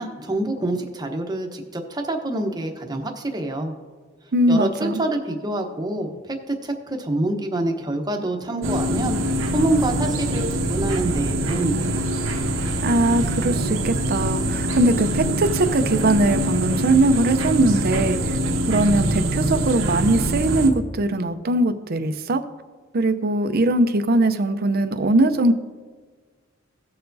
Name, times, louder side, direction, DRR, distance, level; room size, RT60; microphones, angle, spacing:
voice 1, 0.0-3.7 4.5-9.2 9.5-12.0, right 1 dB, 20° right, 3 dB, 1.0 m, -26 dB
voice 2, 4.3-5.0 12.8-18.4 18.7-22.4 22.9-25.5, right 2 dB, 50° right, 9 dB, 0.6 m, -20 dB
sound 1, 8.6-20.7, right 1 dB, 90° right, 1.0 m, -24 dB
17.5 x 6.8 x 2.7 m, 1.4 s
head